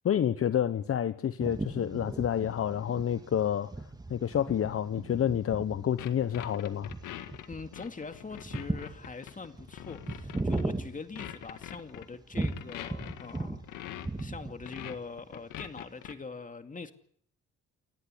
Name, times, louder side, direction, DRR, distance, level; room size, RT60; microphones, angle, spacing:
voice 1, 0.0-3.7 4.1-6.9, left 9 dB, 50° left, 1.0 m, -29 dB
sound 1, 1.4-11.8 12.3-13.7 13.9-14.8, right 2 dB, 15° right, 2.0 m, -37 dB
sound 2, 6.0-10.6 11.1-14.2 14.6-16.1, left 12 dB, 85° left, 1.9 m, -43 dB
voice 2, 7.5-13.6 14.2-16.9, left 4 dB, 25° left, 2.3 m, -43 dB
29.5 x 11.5 x 10.0 m
cardioid pair, 90°, 30 cm